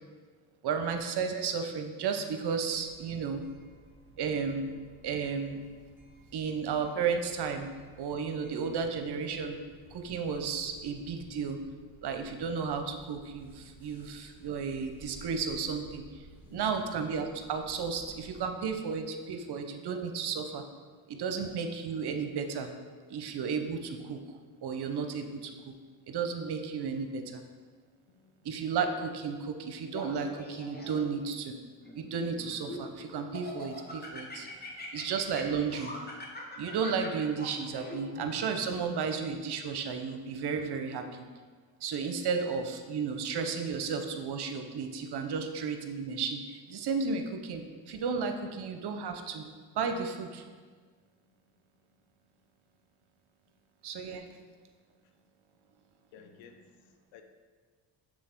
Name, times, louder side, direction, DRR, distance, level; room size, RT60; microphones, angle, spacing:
voice 1, 0.6-3.4 4.2-4.7 5.0-5.6 6.3-7.7 8.0-9.6 9.9-11.6 12.0-16.0 16.5-20.6 21.1-22.7 23.1-24.2 24.6-25.7 26.1-27.4 28.4-31.5 31.9-34.5 34.9-35.9 36.6-41.2 41.8-49.4 49.8-50.4 53.8-54.2, right 5 dB, 60° right, 6 dB, 0.8 m, -33 dB
sound 1, 2.7-18.4, right 3 dB, 5° right, 1.9 m, -56 dB
voice 2, 16.4-16.9 28.1-28.7 34.4-34.6 54.0-54.4 56.1-57.2, left 6 dB, 80° left, 6 dB, 0.8 m, -55 dB
Laughter, 29.9-31.2 31.8-32.9 33.3-38.4, left 1 dB, 20° left, 1.2 m, -43 dB
6.3 x 3.9 x 4.5 m, 1.5 s
supercardioid pair, 65°, 45 cm